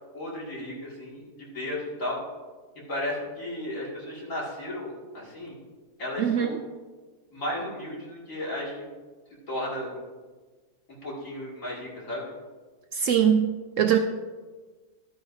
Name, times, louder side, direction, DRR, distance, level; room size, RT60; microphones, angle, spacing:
voice 1, 0.1-2.2 2.9-5.6 6.0-6.6 7.3-8.9 9.5-9.9 11.0-12.3, left 1 dB, 55° left, -5 dB, 2.7 m, -34 dB
voice 2, 6.2-6.6 12.9-13.5 13.8-14.0, right 9 dB, 65° right, 6 dB, 0.8 m, -22 dB
12.0 x 9.8 x 2.7 m, 1.3 s
omnidirectional pair, 1.7 m